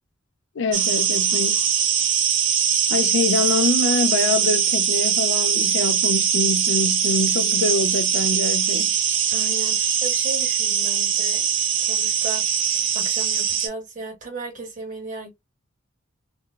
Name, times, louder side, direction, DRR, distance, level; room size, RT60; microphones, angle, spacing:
voice 1, 0.6-1.6 2.9-8.9, left 3 dB, 65° left, 0.4 m, -25 dB
sound 1, 0.7-13.7, right 8 dB, 70° right, 0.7 m, -21 dB
voice 2, 9.3-11.5 11.8-12.4 12.9-15.3, right 3 dB, 40° right, 1.7 m, -35 dB
3.7 x 2.2 x 2.3 m
head